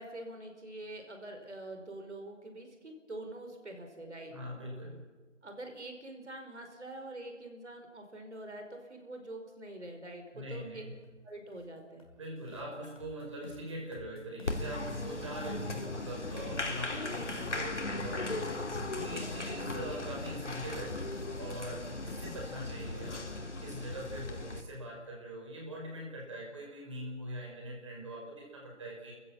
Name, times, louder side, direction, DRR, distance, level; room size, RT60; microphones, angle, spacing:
voice 1, 0.0-4.3 5.4-10.8 11.2-12.1, right 1 dB, 65° right, 5 dB, 5.3 m, -45 dB
voice 2, 4.3-5.0 10.3-11.0 12.2-18.5 18.9-21.0 21.4-23.3 23.6-29.1, right 1 dB, 25° right, -1 dB, 5.6 m, -42 dB
sound 1, 11.0-11.1 11.5-11.7 12.0-12.2 12.5-23.5, left 3 dB, 30° left, 3.0 m, -51 dB
Applause, 14.5-24.6, left 2 dB, 65° left, 2.9 m, -38 dB
30.0 x 15.5 x 7.8 m, 1.4 s
figure-of-eight pair, 170°, 37 cm